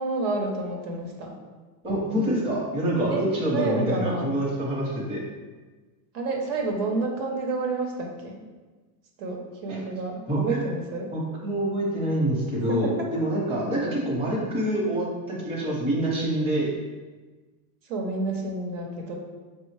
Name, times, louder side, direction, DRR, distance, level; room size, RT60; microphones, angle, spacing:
voice 1, 0.0-1.3 3.1-3.3 3.5-4.3 6.1-8.4 9.2-11.1 12.7-13.1 17.9-19.2, right 3 dB, 65° right, 0 dB, 0.9 m, -29 dB
voice 2, 1.8-5.2 9.7-9.8 10.3-10.6 11.1-16.7, right 1 dB, 10° right, -6 dB, 0.7 m, -26 dB
5.4 x 2.0 x 3.2 m, 1.3 s
supercardioid pair, 135°, 50 cm